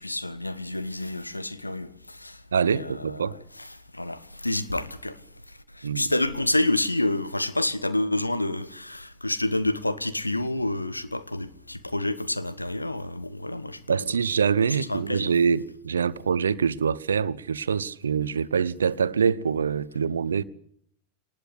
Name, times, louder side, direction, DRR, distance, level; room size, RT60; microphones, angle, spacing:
voice 1, 0.0-3.3 3.6-3.7 3.9-5.2 5.7-14.0 14.9-15.3, left 2 dB, 85° left, 1.4 m, -28 dB
voice 2, 2.5-3.3 5.8-6.1 13.9-20.4, right 6 dB, 70° right, 0.9 m, -25 dB
25.5 x 19.5 x 8.3 m
figure-of-eight pair, 90°, 0 cm